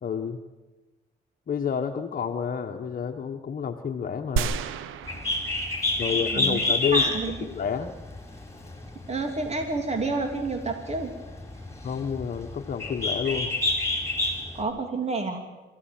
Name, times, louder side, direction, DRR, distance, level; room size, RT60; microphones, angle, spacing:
voice 1, 0.0-0.4 1.5-4.6 6.0-7.1 7.4-7.9 11.8-13.5, left 7 dB, 45° left, 4 dB, 1.4 m, -29 dB
sound 1, 4.4-6.1 6.6-6.7, right 7 dB, 90° right, 1.1 m, -31 dB
Bird, 5.0-14.6, left 2 dB, 15° left, 6.9 m, -29 dB
voice 2, 6.3-6.6 6.9-7.3 9.1-11.1 14.5-15.4, right 3 dB, 35° right, 4 dB, 3.2 m, -29 dB
26.5 x 15.5 x 9.1 m, 1.2 s
cardioid pair, 90°, 20 cm